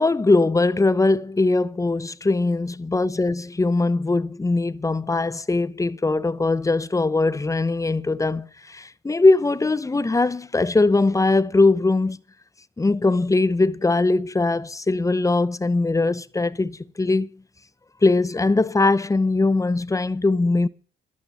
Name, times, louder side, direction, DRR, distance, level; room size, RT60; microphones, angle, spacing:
voice 1, 0.0-12.2 12.8-17.3 18.0-20.7, left 3 dB, 15° left, 0.8 m, -21 dB
12.5 x 11.5 x 6.9 m
cardioid pair, 90°, 20 cm